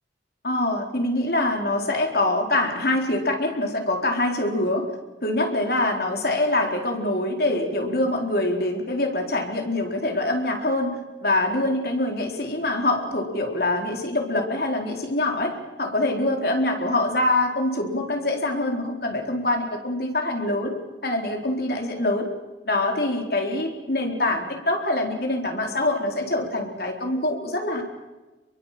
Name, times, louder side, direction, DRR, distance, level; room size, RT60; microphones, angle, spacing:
voice 1, 0.4-4.9 5.2-20.7 21.0-22.3 22.6-27.8, left 2 dB, 55° left, 2 dB, 4.2 m, -24 dB
27.0 x 23.0 x 7.6 m, 1.2 s
head